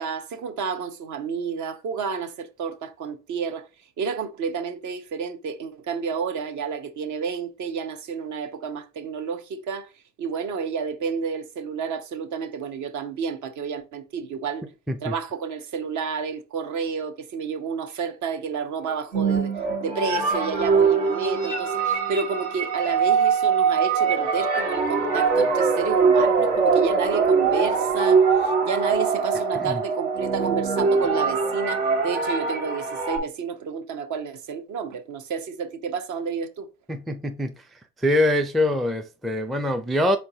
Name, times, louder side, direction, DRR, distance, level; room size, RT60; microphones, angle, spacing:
voice 1, 0.0-3.7 4.0-9.9 10.2-14.6 15.0-19.5 19.8-36.7, right 5 dB, 50° right, 0.8 m, -30 dB
sound 1, 18.9-33.2, right 5 dB, 75° right, 1.5 m, -22 dB
voice 2, 36.9-37.6 38.0-40.2, left 1 dB, ahead, 0.4 m, -24 dB
4.4 x 4.1 x 2.7 m
hypercardioid pair, 75°, 38 cm